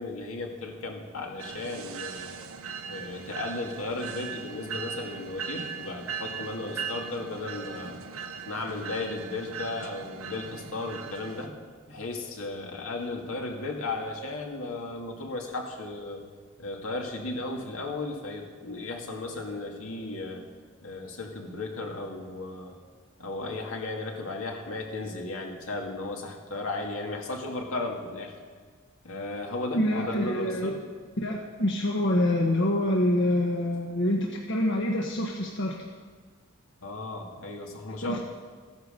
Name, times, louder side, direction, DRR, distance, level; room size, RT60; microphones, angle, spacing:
voice 1, 0.0-2.4 2.9-8.0 8.5-11.5 11.9-16.2 16.6-20.4 20.8-22.7 23.2-28.4 29.0-30.8 36.8-38.2, left 2 dB, 80° left, 1 dB, 2.2 m, -35 dB
sound 1, 1.4-11.5, right 6 dB, 85° right, 1.1 m, -39 dB
voice 2, 29.7-30.8 31.2-35.7 38.0-38.2, left 1 dB, 60° left, 0 dB, 1.3 m, -26 dB
15.0 x 9.6 x 6.6 m, 1.5 s
head